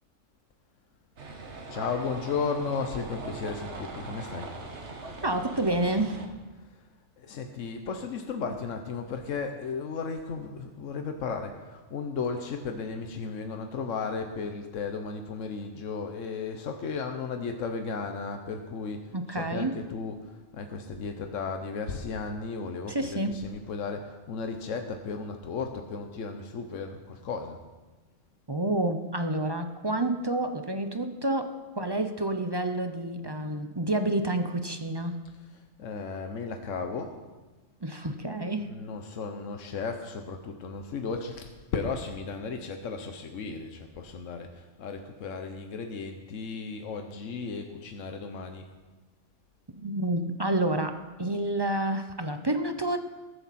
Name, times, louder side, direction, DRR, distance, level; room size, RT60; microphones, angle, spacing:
sound 1, 1.2-6.3, right 3 dB, 65° right, 1.6 m, -41 dB
voice 1, 1.7-4.5 6.5-6.9 7.2-27.6 35.2-37.2 38.6-48.7, left 5 dB, 85° left, 5 dB, 1.3 m, -35 dB
voice 2, 5.2-6.2 19.1-19.7 22.9-23.3 28.5-35.1 37.8-38.7 49.8-53.0, right 1 dB, 25° right, 7 dB, 0.6 m, -29 dB
20.5 x 7.9 x 4.2 m, 1.2 s
omnidirectional pair, 1.3 m